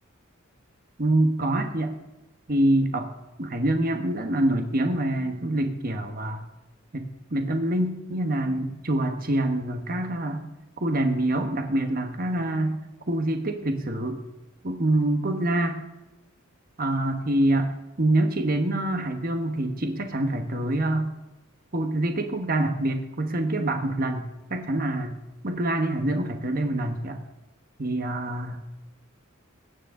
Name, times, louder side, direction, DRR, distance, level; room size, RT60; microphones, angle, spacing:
voice 1, 1.0-2.0 2.5-3.1 3.4-6.4 6.9-10.4 10.8-12.8 13.1-14.2 14.6-15.8 16.8-17.7 18.0-21.1 21.7-25.1 25.4-27.2 27.8-28.6, right 1 dB, 45° right, 5 dB, 1.2 m, -25 dB
22.0 x 9.6 x 3.8 m, 0.99 s
head